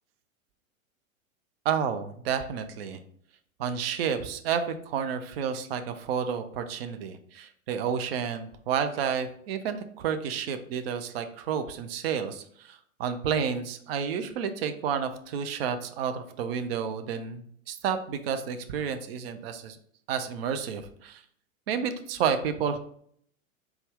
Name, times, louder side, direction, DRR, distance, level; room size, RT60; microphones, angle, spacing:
voice 1, 1.7-3.0 3.6-19.8 20.1-21.2 21.7-22.8, right 7 dB, 50° right, 9 dB, 0.4 m, -30 dB
4.0 x 2.3 x 3.4 m, 0.64 s
figure-of-eight pair, 100°, 42 cm